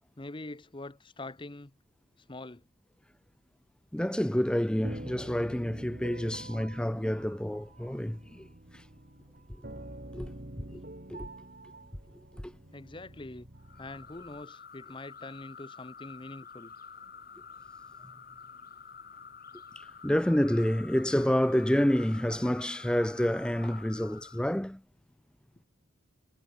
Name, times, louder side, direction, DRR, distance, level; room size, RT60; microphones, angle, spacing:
voice 1, 0.2-1.7 2.3-2.6 12.7-13.5 13.8-16.7, left 2 dB, 25° left, 0.8 m, -44 dB
voice 2, 3.9-8.5 8.7-8.8 10.1-10.3 10.7-10.8 11.1-11.3 12.3-12.5 19.8-24.8, equal, 5° left, 0.4 m, -28 dB
sound 1, 4.8-14.4, right 1 dB, 45° right, 2.3 m, -47 dB
sound 2, 13.6-24.5, left 6 dB, 45° left, 4.1 m, -49 dB
head